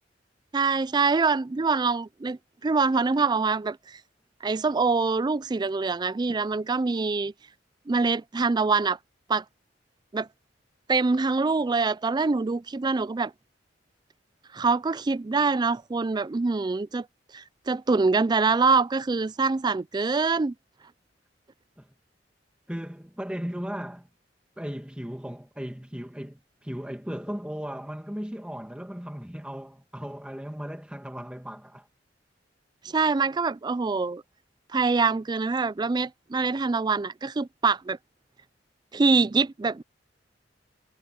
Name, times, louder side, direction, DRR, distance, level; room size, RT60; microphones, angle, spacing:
voice 1, 0.5-4.0 4.4-7.3 7.9-9.0 9.3-9.4 10.1-10.3 10.9-13.3 14.5-17.1 17.3-20.5 32.8-34.2 34.7-38.0 38.9-39.8, right 4 dB, 25° right, 0.4 m, -24 dB
voice 2, 22.7-24.1 24.6-31.9, equal, 5° right, 1.6 m, -36 dB
head